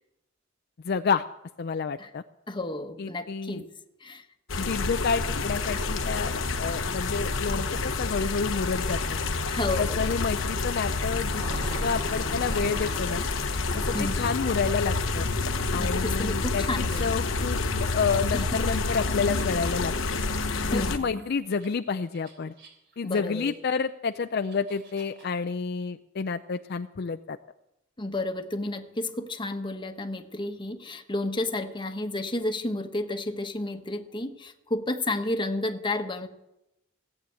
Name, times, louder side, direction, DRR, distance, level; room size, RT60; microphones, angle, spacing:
voice 1, 0.8-1.2 1.6-2.2 3.0-3.6 4.6-9.2 9.8-11.4 11.8-13.2 13.7-15.3 15.7-19.9 20.7-22.5 23.0-27.4, left 5 dB, 55° left, 9 dB, 0.5 m, -29 dB
voice 2, 2.5-3.7 4.0-4.2 9.5-10.2 13.9-14.3 15.8-17.3 18.3-18.6 20.7-21.3 23.0-23.5 28.0-36.3, left 2 dB, 25° left, 7 dB, 1.1 m, -32 dB
sound 1, 4.5-21.0, left 3 dB, 80° left, 1.1 m, -28 dB
Growling, 11.3-13.0 13.7-14.3 16.9-21.7 22.1-22.9 23.5-23.6 24.2-25.3, right 1 dB, 60° right, 3.7 m, -42 dB
17.0 x 8.6 x 7.8 m, 0.88 s
head